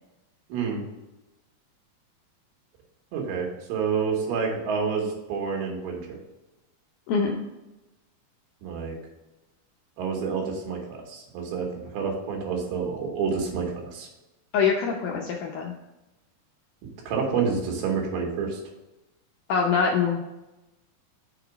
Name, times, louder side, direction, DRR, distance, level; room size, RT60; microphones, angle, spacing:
voice 1, 0.5-0.8 3.1-6.2 8.6-9.0 10.0-11.7 11.9-14.1 17.1-18.6, right 5 dB, 90° right, 1 dB, 3.3 m, -28 dB
voice 2, 14.5-15.7 19.5-20.2, left 6 dB, 80° left, 0 dB, 1.8 m, -24 dB
6.5 x 3.9 x 5.7 m, 1.0 s
omnidirectional pair, 4.4 m